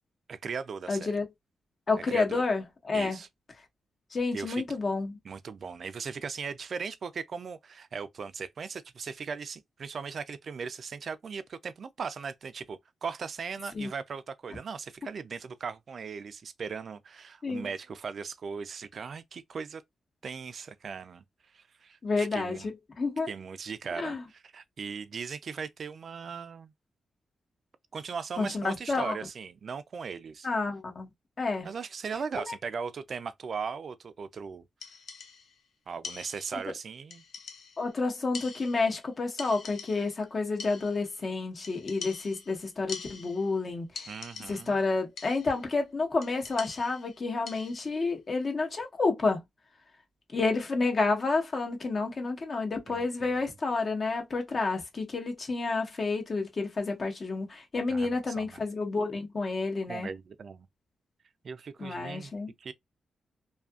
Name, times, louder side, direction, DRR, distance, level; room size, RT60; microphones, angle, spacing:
voice 1, 0.3-1.1 2.1-2.4 2.9-3.3 4.3-4.6 5.2-19.8 20.2-21.2 21.5-22.7 23.3-26.7 27.9-30.5 31.6-34.7 35.9-37.2 44.1-44.8 52.9-53.4 57.9-58.6 59.9-60.7 61.4-62.3 62.6-62.7, right 5 dB, 55° right, 0.4 m, -38 dB
voice 2, 0.9-1.3 1.9-3.2 4.1-5.2 13.7-13.9 17.4-17.7 22.0-22.6 23.0-23.3 24.0-24.2 28.4-29.1 30.4-31.1 31.4-31.7 37.8-43.9 44.5-49.4 50.3-60.1 61.8-62.5, left 3 dB, 45° left, 1.0 m, -30 dB
sound 1, 34.8-35.6 36.0-36.7 37.1-37.9 38.3-39.1 39.4-40.2 40.6-41.2 41.6-43.6 44.0-44.8 45.2-45.7 46.2-48.0, left 5 dB, 75° left, 0.6 m, -44 dB
2.6 x 2.5 x 2.3 m
cardioid pair, 85°, 0 cm